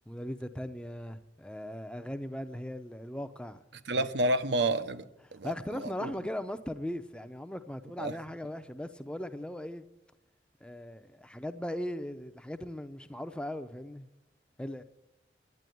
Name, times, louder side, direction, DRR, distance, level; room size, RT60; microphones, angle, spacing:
voice 1, 0.1-3.6 4.0-4.1 5.3-9.8 10.6-14.1 14.6-14.8, left 1 dB, 5° left, 0.5 m, -39 dB
voice 2, 3.9-5.1 5.3-5.5 5.8-6.1 8.0-8.1, right 1 dB, 80° right, 0.7 m, -29 dB
11.0 x 9.2 x 9.1 m
head